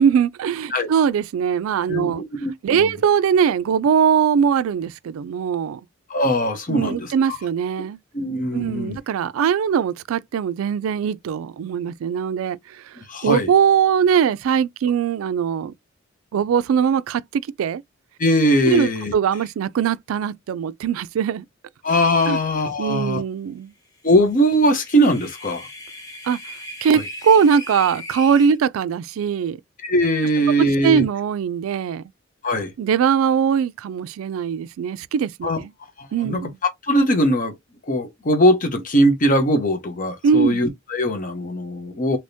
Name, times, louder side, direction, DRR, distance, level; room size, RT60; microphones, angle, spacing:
voice 1, 0.0-2.2 2.6-5.8 6.7-8.0 8.5-12.9 13.2-15.7 16.3-17.8 18.6-21.4 22.3-22.4 22.8-23.7 26.3-26.4 26.8-29.6 30.6-32.0 32.8-35.7 36.1-36.6 40.2-40.6, right 7 dB, 85° right, 0.3 m, -21 dB
voice 2, 1.9-2.9 6.1-7.4 8.1-9.0 13.1-13.5 18.2-19.1 21.8-23.2 24.0-25.7 26.9-27.0 29.8-31.0 32.4-32.7 35.4-35.6 36.0-36.4 36.9-37.5 37.9-42.2, equal, 40° left, 0.8 m, -20 dB
sound 1, 24.3-28.6, equal, 15° left, 1.1 m, -37 dB
3.4 x 2.9 x 2.7 m
head